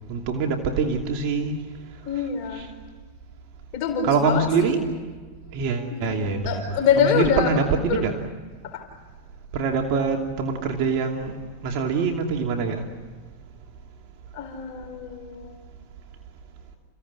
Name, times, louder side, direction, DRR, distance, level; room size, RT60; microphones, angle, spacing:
voice 1, 0.1-1.5 2.1-2.7 4.0-4.8 5.5-8.1 9.5-11.4 11.6-12.9, right 5 dB, 55° right, 2 dB, 2.8 m, -24 dB
voice 2, 2.1-2.7 3.7-4.8 5.9-6.1 6.4-7.5 7.9-8.0 8.7-8.8 14.3-15.5, left 7 dB, 55° left, 4 dB, 4.4 m, -25 dB
29.5 x 17.0 x 9.8 m, 1.4 s
hypercardioid pair, 120°, 0 cm